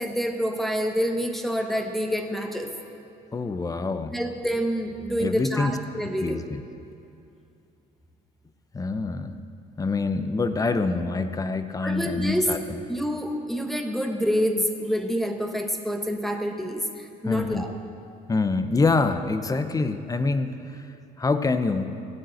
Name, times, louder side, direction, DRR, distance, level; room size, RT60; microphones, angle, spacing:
voice 1, 0.0-2.7 4.1-6.4 11.8-12.5 12.9-17.7, equal, ahead, 3 dB, 1.2 m, -27 dB
voice 2, 3.3-4.2 5.2-5.8 6.0-6.6 8.7-9.4 9.8-12.8 17.2-17.6 18.3-20.9 21.2-21.9, left 3 dB, 20° left, 10 dB, 0.8 m, -26 dB
15.5 x 9.3 x 7.8 m, 2.6 s
cardioid pair, 110°, 17 cm